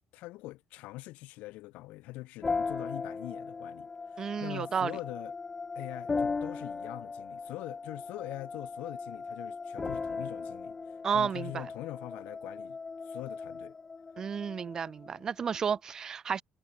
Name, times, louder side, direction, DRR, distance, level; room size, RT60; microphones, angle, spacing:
voice 1, 0.1-5.3 5.8-10.8 11.1-12.8 13.1-13.7, left 19 dB, 90° left, 3.8 m, -43 dB
sound 1, 2.4-15.7, left 4 dB, 15° left, 1.7 m, -38 dB
voice 2, 4.2-4.9 11.0-11.7 14.2-16.4, right 7 dB, 25° right, 1.0 m, -32 dB
cardioid pair, 180°, 2 cm